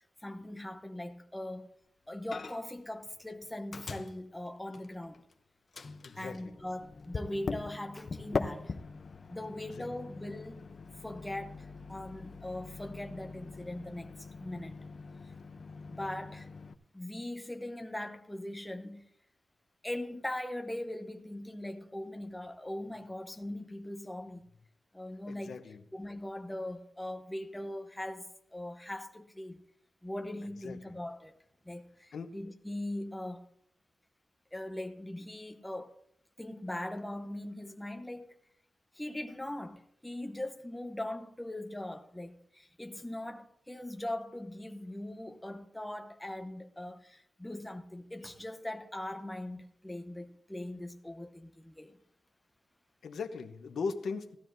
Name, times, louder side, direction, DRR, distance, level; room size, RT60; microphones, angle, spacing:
voice 1, 0.2-1.7 2.1-5.2 6.1-8.8 9.3-10.6 11.0-14.8 15.9-16.5 16.9-19.1 19.8-24.4 24.9-25.6 25.9-29.6 30.0-31.4 31.6-33.5 34.5-35.9 36.4-38.3 38.9-52.0, left 1 dB, 5° left, 0.8 m, -40 dB
Microwave oven, 2.3-2.8 3.1-5.3 5.7-16.7, left 4 dB, 45° left, 0.6 m, -42 dB
voice 2, 6.0-6.5 9.8-9.9 25.3-25.8 30.6-30.8 32.1-32.3 53.0-54.4, left 4 dB, 90° left, 0.8 m, -38 dB
17.0 x 12.5 x 2.6 m
wide cardioid pair, 175°, 0 cm